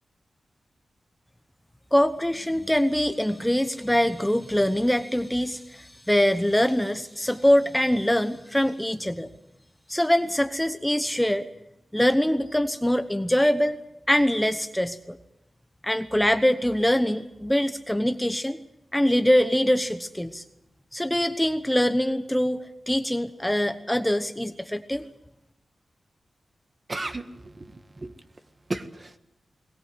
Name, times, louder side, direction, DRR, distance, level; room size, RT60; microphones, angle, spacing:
voice 1, 1.9-9.3 9.9-11.5 11.9-13.8 14.1-15.2 15.8-18.6 18.9-20.4 20.9-25.0, equal, 5° left, 9 dB, 1.0 m, -23 dB
voice 2, 26.9-28.1 28.7-29.2, right 2 dB, 35° right, 7 dB, 1.7 m, -34 dB
22.0 x 19.5 x 7.9 m, 0.90 s
cardioid pair, 75°, 0 cm